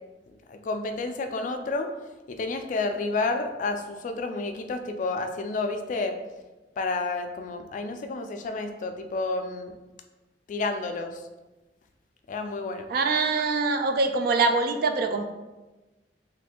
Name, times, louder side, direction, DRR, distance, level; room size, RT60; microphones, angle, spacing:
voice 1, 0.5-1.9 2.3-6.2 6.8-9.7 10.5-11.2 12.3-12.9, left 3 dB, 45° left, 6 dB, 0.3 m, -30 dB
voice 2, 12.9-15.2, right 3 dB, 55° right, 6 dB, 0.3 m, -24 dB
3.2 x 2.5 x 3.5 m, 1.1 s
head